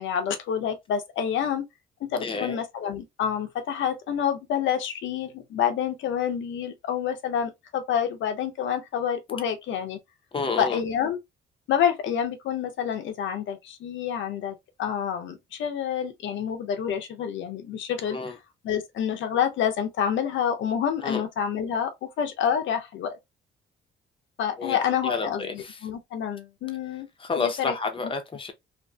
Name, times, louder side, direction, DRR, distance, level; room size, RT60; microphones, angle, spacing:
voice 1, 0.0-1.6 2.1-10.0 10.6-11.2 11.7-18.2 18.6-23.2 24.4-27.1 27.4-27.7, left 8 dB, 75° left, 0.6 m, -28 dB
voice 2, 2.2-2.6 10.3-10.8 18.1-18.4 21.0-21.2 24.6-25.9 27.2-28.5, left 4 dB, 25° left, 0.6 m, -30 dB
2.5 x 2.5 x 2.2 m
cardioid pair, 90°, 20 cm